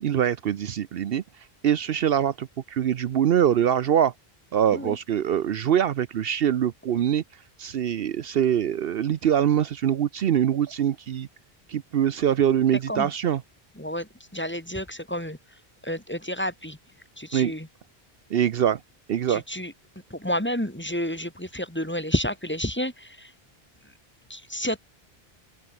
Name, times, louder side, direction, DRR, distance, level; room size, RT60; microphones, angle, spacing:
voice 1, 0.0-1.2 1.6-4.1 4.5-7.2 7.6-11.3 11.7-13.4 17.3-17.5 18.3-18.8 19.1-19.4, right 9 dB, 70° right, 0.9 m, -23 dB
voice 2, 13.8-15.4 15.8-16.8 17.2-17.7 19.3-19.7 20.1-23.3 24.3-24.8, equal, 10° left, 2.7 m, -30 dB
open air
omnidirectional pair, 1.0 m